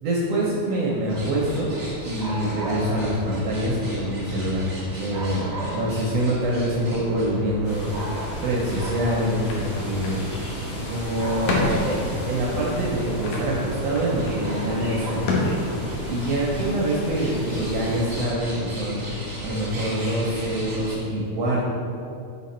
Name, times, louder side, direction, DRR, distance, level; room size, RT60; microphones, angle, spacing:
voice 1, 0.0-1.7 2.1-4.7 5.0-7.9 8.4-10.2 10.7-15.3 16.0-19.0 19.4-21.7, right 1 dB, 75° right, -4 dB, 1.4 m, -25 dB
sound 1, 1.1-20.9, right 1 dB, 35° right, 1.0 m, -35 dB
sound 2, 7.6-18.2, equal, 55° left, 1.5 m, -36 dB
sound 3, 8.9-16.3, left 2 dB, 80° left, 2.4 m, -31 dB
6.2 x 4.2 x 4.2 m, 2.6 s
omnidirectional pair, 3.7 m